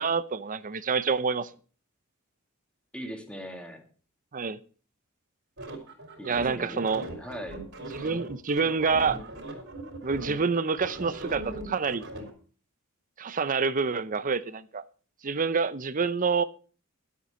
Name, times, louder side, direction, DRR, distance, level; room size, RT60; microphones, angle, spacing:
voice 1, 0.0-1.5 4.3-4.6 6.2-7.1 7.9-9.2 10.0-12.1 13.2-14.8 15.2-16.4, right 5 dB, 40° right, 0.7 m, -27 dB
voice 2, 2.9-3.8 6.2-6.8 7.1-7.6, equal, 5° left, 2.0 m, -40 dB
sound 1, 5.6-12.3, right 1 dB, 55° right, 3.6 m, -40 dB
12.0 x 8.2 x 5.5 m
head